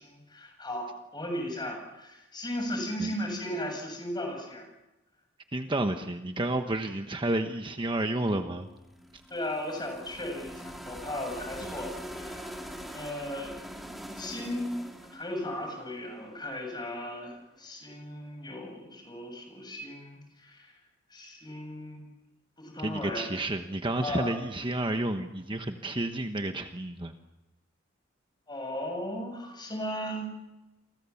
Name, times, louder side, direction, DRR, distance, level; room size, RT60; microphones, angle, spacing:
voice 1, 0.0-4.7 9.3-12.7 12.9-13.6 14.2-14.7 15.1-20.7 21.1-22.1 22.6-23.4 24.0-24.4 28.5-30.4, left 1 dB, 20° left, 4 dB, 7.6 m, -36 dB
voice 2, 5.5-8.7 11.6-11.7 22.8-27.1, right 1 dB, 25° right, 6 dB, 1.2 m, -31 dB
sound 1, 8.7-16.8, equal, ahead, 3.3 m, -43 dB
30.0 x 24.5 x 7.2 m, 1.0 s
head